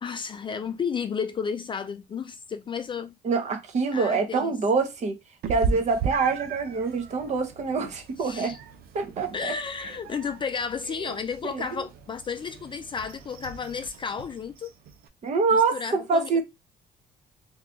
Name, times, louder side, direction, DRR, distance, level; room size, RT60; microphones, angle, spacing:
voice 1, 0.0-3.1 3.9-4.5 8.2-8.6 9.3-14.7 15.5-16.4, left 6 dB, 30° left, 0.4 m, -32 dB
voice 2, 3.2-5.1 5.5-8.6 8.9-9.5 10.9-11.2 11.4-11.9 15.2-16.4, right 4 dB, 45° right, 0.8 m, -25 dB
Meow, 5.4-15.1, right 5 dB, 65° right, 0.6 m, -37 dB
2.8 x 2.4 x 3.5 m
cardioid pair, 110°, 17 cm